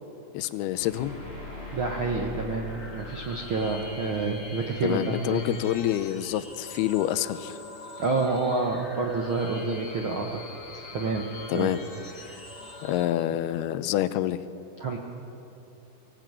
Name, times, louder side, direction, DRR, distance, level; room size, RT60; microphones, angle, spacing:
voice 1, 0.3-1.2 4.8-7.6 11.5-11.8 12.8-14.4, left 13 dB, 90° left, 13 dB, 2.7 m, -27 dB
sound 1, 0.7-5.8, left 3 dB, 15° right, 5.4 m, -42 dB
voice 2, 1.7-5.4 8.0-10.4 10.7-11.2 11.5-11.7 12.2-12.4 14.8-15.0, right 3 dB, 65° right, 1 dB, 1.2 m, -28 dB
sound 2, 2.4-13.0, left 2 dB, 20° left, 2.5 m, -44 dB
24.0 x 16.5 x 9.0 m, 2.9 s
omnidirectional pair, 4.4 m